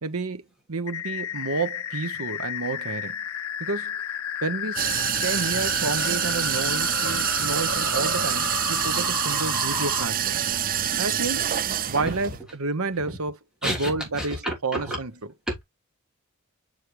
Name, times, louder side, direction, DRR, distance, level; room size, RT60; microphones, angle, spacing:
voice 1, 0.0-3.2 3.6-3.9 4.4-4.9 5.2-10.4 11.0-11.5 11.9-15.3, right 3 dB, 85° right, 1.1 m, -30 dB
sound 1, 0.9-10.0, left 8 dB, 80° left, 0.6 m, -32 dB
sound 2, 4.8-12.4, right 10 dB, 40° right, 0.5 m, -26 dB
sound 3, 6.1-8.6, right 2 dB, 70° right, 2.8 m, -38 dB
voice 2, 13.6-15.0, equal, 5° right, 3.1 m, -30 dB
6.5 x 6.4 x 3.2 m
head